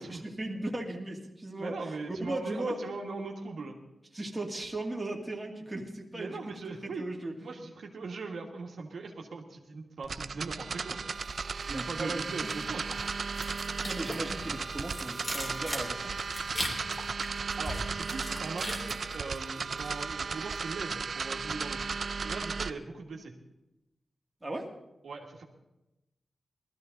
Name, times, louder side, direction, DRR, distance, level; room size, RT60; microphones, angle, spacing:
voice 1, 0.0-2.8 4.1-6.4 6.8-7.3 11.6-12.5 13.8-16.2 24.4-24.7, right 2 dB, 20° right, 0 dB, 2.4 m, -37 dB
voice 2, 1.5-3.8 6.1-7.1 7.4-11.0 11.7-13.0 17.6-21.8 22.2-23.3 25.0-25.4, right 4 dB, 80° right, 0 dB, 1.8 m, -40 dB
sound 1, 10.0-22.7, right 5 dB, 65° right, 0.5 m, -35 dB
sound 2, 11.2-11.9 12.2-20.0 20.3-20.7, equal, 25° left, 3.7 m, -40 dB
19.5 x 14.0 x 4.0 m, 0.92 s
cardioid pair, 75°, 0 cm